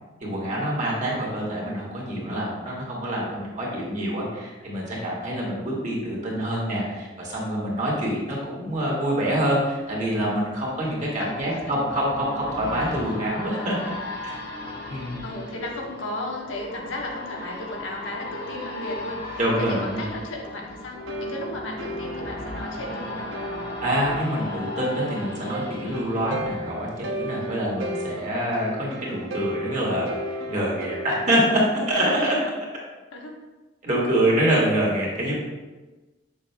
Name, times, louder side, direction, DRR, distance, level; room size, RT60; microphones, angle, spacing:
voice 1, 0.2-13.8 14.9-15.2 19.4-20.1 23.8-32.3 33.8-35.3, right 1 dB, 40° right, -4 dB, 1.7 m, -26 dB
voice 2, 5.7-6.6 11.2-11.7 15.2-23.3 28.9-29.2 31.9-32.5 33.1-33.4, left 1 dB, 85° left, -1 dB, 1.1 m, -35 dB
sound 1, 9.8-27.2 27.6-27.7, left 2 dB, 55° left, 1.0 m, -37 dB
sound 2, 20.9-31.9, right 1 dB, 80° right, 0.7 m, -35 dB
6.9 x 6.4 x 2.2 m, 1.2 s
head